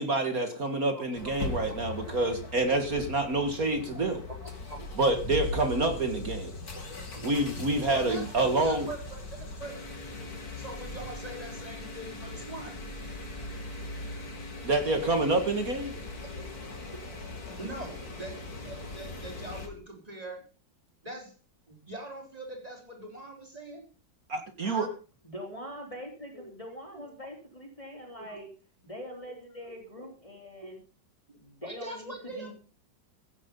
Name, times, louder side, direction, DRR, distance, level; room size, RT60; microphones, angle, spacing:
voice 1, 0.0-4.2 5.0-6.5 7.2-8.9 14.6-15.9 24.3-24.9, right 2 dB, 50° right, 6 dB, 2.2 m, -27 dB
voice 2, 0.9-2.1 3.7-5.0 6.1-7.5 7.9-9.8 10.6-12.8 16.2-17.0 17.6-20.4 21.0-21.3 21.7-23.9 26.3-26.5 26.9-27.1 28.2-28.4 29.2-29.4 29.6-29.7 30.5-30.7 31.6-32.5, right 1 dB, 20° right, 2 dB, 4.4 m, -43 dB
sound 1, 1.1-19.7, left 2 dB, 55° left, 3.3 m, -40 dB
voice 3, 25.2-28.5 28.8-30.8 31.4-32.5, equal, 15° left, 1 dB, 3.7 m, -43 dB
16.0 x 9.8 x 5.4 m, 0.36 s
omnidirectional pair, 2.0 m